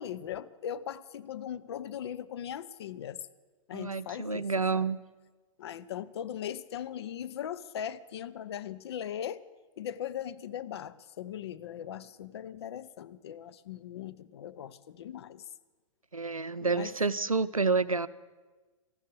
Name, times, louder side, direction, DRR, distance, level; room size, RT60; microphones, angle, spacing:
voice 1, 0.0-3.2 3.7-4.9 5.6-9.4 9.8-15.4 16.6-16.9, left 10 dB, 50° left, 13 dB, 0.6 m, -39 dB
voice 2, 3.7-5.0 16.1-18.1, right 4 dB, 90° right, 16 dB, 0.5 m, -29 dB
14.0 x 12.0 x 7.8 m, 1.3 s
figure-of-eight pair, 110°, 17 cm